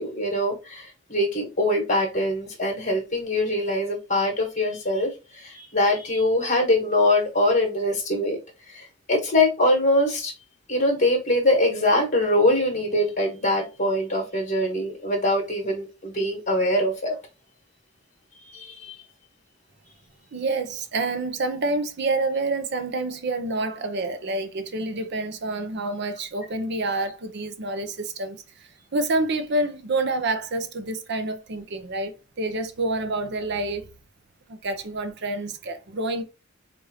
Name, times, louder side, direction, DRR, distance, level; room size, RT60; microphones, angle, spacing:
voice 1, 0.0-8.4 8.7-10.3 10.7-17.2 18.4-19.0, left 1 dB, 40° left, 1.3 m, -23 dB
voice 2, 20.3-33.9 34.5-36.2, right 2 dB, 55° right, 0.6 m, -28 dB
4.8 x 2.6 x 2.7 m
head